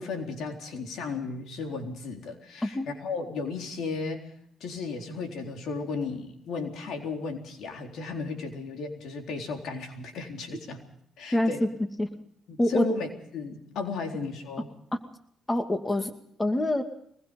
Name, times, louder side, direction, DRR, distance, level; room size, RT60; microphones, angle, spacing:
voice 1, 0.0-4.2 4.6-10.8 11.2-11.6 12.5-14.7, left 4 dB, 75° left, 3 dB, 4.1 m, -34 dB
voice 2, 11.3-11.7 12.0-12.1 12.6-12.9 15.5-16.1 16.4-16.8, left 1 dB, 15° left, 6 dB, 2.4 m, -25 dB
23.5 x 20.5 x 5.5 m, 0.69 s
cardioid pair, 90°, 0 cm